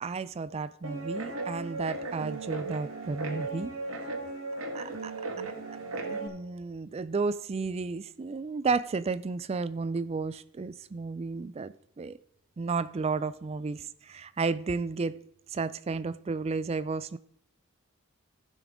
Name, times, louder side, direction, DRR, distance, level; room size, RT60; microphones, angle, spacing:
voice 1, 0.0-3.7 4.7-5.5 5.7-12.2 12.6-15.2 15.5-17.2, right 4 dB, 30° right, 0.3 m, -33 dB
Guitar, 0.8-6.3, right 3 dB, 70° right, 1.6 m, -36 dB
15.5 x 6.2 x 3.6 m
head